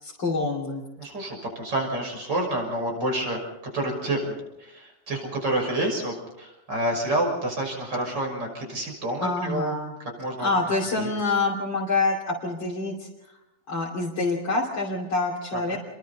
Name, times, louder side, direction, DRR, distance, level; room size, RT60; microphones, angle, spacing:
voice 1, 0.0-0.8 9.2-10.0 10.4-13.1 13.7-15.8, left 3 dB, 75° left, -5 dB, 3.6 m, -26 dB
voice 2, 1.0-3.4 3.7-9.8 10.2-10.5 10.9-11.1 15.5-15.8, right 1 dB, 70° right, 1 dB, 6.8 m, -28 dB
29.5 x 23.0 x 4.2 m, 0.92 s
omnidirectional pair, 2.0 m